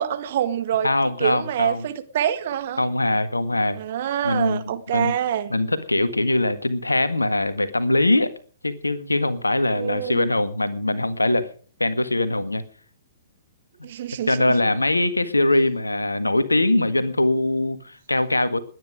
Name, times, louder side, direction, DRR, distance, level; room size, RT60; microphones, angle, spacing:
voice 1, 0.0-0.9 1.2-2.8 3.7-5.5 9.7-10.3 13.8-14.6, right 10 dB, 45° right, 1.7 m, -26 dB
voice 2, 0.8-1.9 2.8-3.8 4.2-4.6 4.9-5.1 5.5-8.3 8.6-11.5 11.8-12.6 14.3-18.6, left 2 dB, 80° left, 1.6 m, -22 dB
20.5 x 9.9 x 5.0 m
figure-of-eight pair, 115°, 0 cm